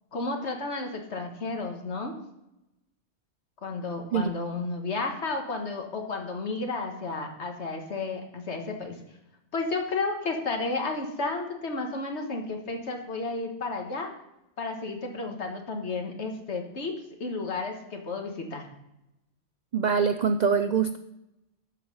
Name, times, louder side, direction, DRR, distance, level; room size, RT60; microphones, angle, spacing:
voice 1, 0.1-2.1 3.6-8.9 9.5-14.1 14.6-18.7, left 3 dB, 65° left, 3 dB, 1.7 m, -32 dB
voice 2, 19.7-21.0, right 6 dB, 70° right, 10 dB, 0.4 m, -24 dB
12.5 x 5.5 x 5.5 m, 0.88 s
omnidirectional pair, 1.3 m